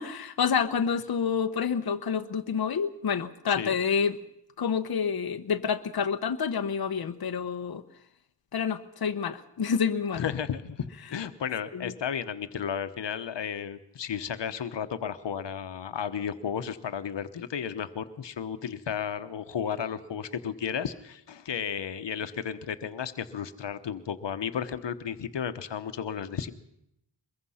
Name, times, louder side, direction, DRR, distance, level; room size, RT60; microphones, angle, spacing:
voice 1, 0.0-4.2 4.6-7.8 8.5-10.3 11.7-11.9, left 6 dB, 60° left, 7 dB, 1.0 m, -28 dB
voice 2, 10.2-26.5, left 8 dB, 85° left, 11 dB, 1.2 m, -33 dB
23.5 x 21.5 x 5.7 m, 0.80 s
wide cardioid pair, 115°, 42 cm